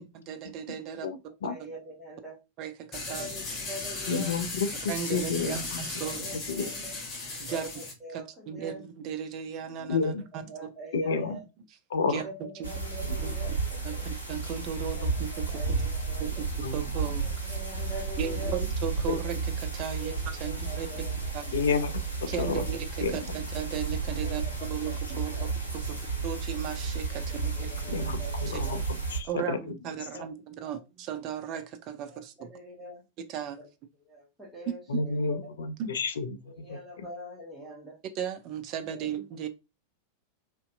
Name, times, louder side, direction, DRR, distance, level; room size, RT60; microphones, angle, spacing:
voice 1, 0.1-1.1 1.6-1.7 2.6-3.3 4.9-6.2 7.4-7.7 8.1-10.5 12.1-12.7 13.2-13.3 13.8-15.8 16.2-17.3 18.2-21.0 21.3-21.6 22.3-25.4 25.7-27.5 29.2-32.5 33.3-33.6 34.7-35.0 35.8-35.9 38.2-39.5, right 8 dB, 40° right, 0.3 m, -36 dB
voice 2, 1.4-2.4 3.0-4.4 5.1-5.6 6.0-7.0 7.5-8.8 10.3-11.5 12.1-14.1 14.9-16.4 17.2-18.6 20.0-21.3 22.4-22.7 23.0-23.1 24.2-25.5 25.8-26.0 27.1-28.8 29.4-29.6 30.1-30.3 30.6-30.8 32.1-33.0 33.6-33.7 34.0-35.7 36.4-38.0 38.9-39.1, right 1 dB, 5° right, 0.9 m, -44 dB
sound 1, 2.9-7.9, left 3 dB, 25° left, 0.8 m, -36 dB
voice 3, 4.1-5.8 6.5-6.6 9.9-10.2 10.9-11.4 11.9-12.1 16.6-16.8 19.1-19.2 21.5-21.9 22.4-22.6 23.0-23.2 27.9-28.8 29.1-29.6 34.9-36.3 36.7-36.8, left 5 dB, 65° left, 0.4 m, -29 dB
sound 2, 12.6-29.2, right 4 dB, 85° left, 0.7 m, -32 dB
2.5 x 2.1 x 2.4 m
figure-of-eight pair, 90°, 0 cm